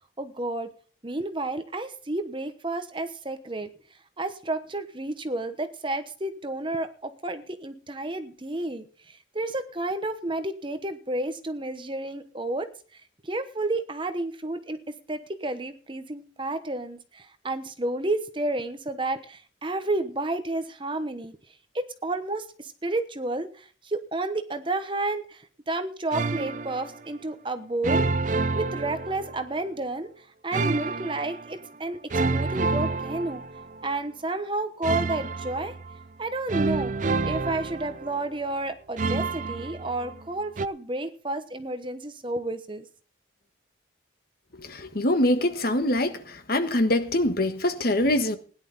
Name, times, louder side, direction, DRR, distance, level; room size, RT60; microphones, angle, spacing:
voice 1, 0.2-0.7 1.0-3.7 4.2-12.7 13.2-14.8 15.1-21.4 21.7-28.1 28.5-30.1 30.4-32.0 32.3-33.4 33.8-35.7 36.2-36.9 37.2-42.8, right 2 dB, 25° right, 1.0 m, -31 dB
sound 1, 26.1-27.0 27.8-29.6 30.5-31.5 32.1-33.9 34.8-36.0 36.5-38.4 39.0-40.2 40.6-40.7, right 3 dB, 40° right, 0.5 m, -28 dB
voice 2, 44.6-48.4, left 1 dB, 50° left, 1.5 m, -24 dB
17.0 x 11.0 x 4.1 m
head